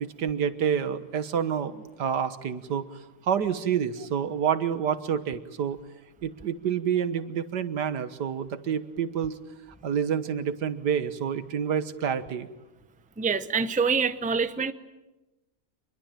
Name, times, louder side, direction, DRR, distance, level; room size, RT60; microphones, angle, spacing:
voice 1, 0.0-5.8 6.2-9.4 9.8-12.5, right 8 dB, 90° right, 12 dB, 1.9 m, -28 dB
voice 2, 13.2-14.7, right 5 dB, 5° right, 11 dB, 0.6 m, -25 dB
26.5 x 22.0 x 9.1 m, 1.0 s
omnidirectional pair, 1.7 m